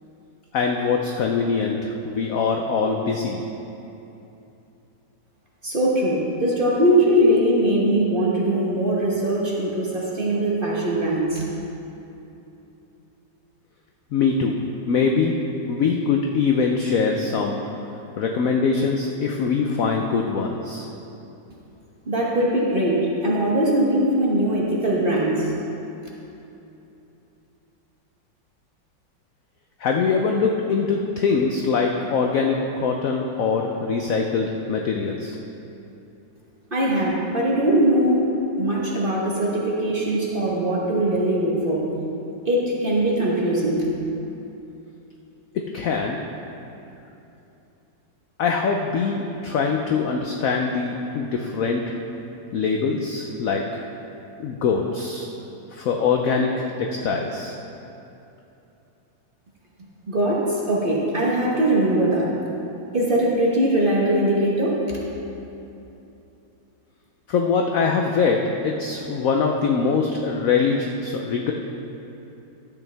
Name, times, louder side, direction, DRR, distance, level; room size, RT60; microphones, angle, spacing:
voice 1, 0.5-3.4 14.1-14.6 14.9-15.3 15.7-17.6 18.2-20.9 29.8-35.4 45.7-46.2 48.4-51.8 52.5-53.6 54.4-55.3 55.7-57.6 67.3-71.5, left 5 dB, 70° left, 2 dB, 0.8 m, -23 dB
voice 2, 5.6-11.4 22.1-25.5 36.7-38.2 38.6-41.8 42.5-43.9 60.1-62.4 62.9-65.0, right 1 dB, 35° right, -4 dB, 1.2 m, -21 dB
12.0 x 8.3 x 3.4 m, 2.9 s
omnidirectional pair, 2.0 m